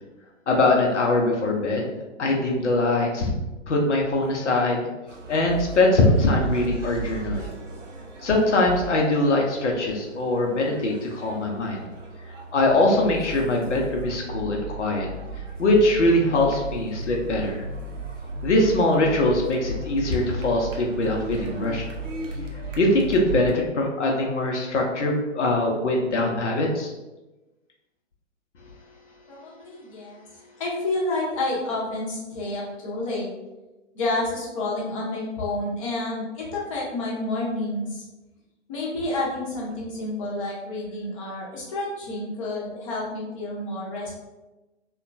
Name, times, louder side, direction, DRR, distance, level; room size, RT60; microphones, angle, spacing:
voice 1, 0.5-1.8 2.2-3.3 3.7-4.8 5.3-7.5 8.2-11.9 12.5-15.1 15.6-17.6 18.4-21.8 22.8-26.9, left 2 dB, 70° left, 0 dB, 0.7 m, -22 dB
sound 1, 5.1-23.5, right 2 dB, 80° right, 0.7 m, -35 dB
voice 2, 29.3-30.2 30.6-33.3 33.9-38.0 38.7-44.1, left 2 dB, 25° left, -5 dB, 0.7 m, -29 dB
2.8 x 2.2 x 2.5 m, 1.1 s
figure-of-eight pair, 125°, 37 cm